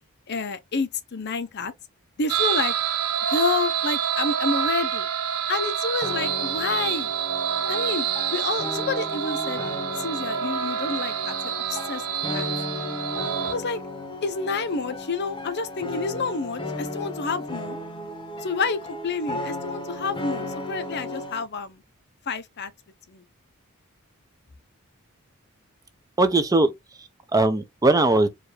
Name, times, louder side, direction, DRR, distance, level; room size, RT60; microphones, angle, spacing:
voice 1, 0.3-1.7 2.2-2.7 3.3-5.1 5.5-7.1 7.7-8.1 8.3-9.6 10.0-12.0 12.3-12.5 13.4-13.8 14.2-17.8 18.4-21.8 22.3-22.7 23.1-23.2, left 4 dB, 50° left, 0.6 m, -29 dB
sound 1, 2.3-13.5, right 9 dB, 85° right, 0.6 m, -27 dB
sound 2, 6.0-21.4, left 1 dB, 20° left, 0.9 m, -35 dB
voice 2, 26.2-26.7 27.0-28.3, right 2 dB, 15° right, 0.5 m, -20 dB
4.7 x 2.5 x 3.2 m
head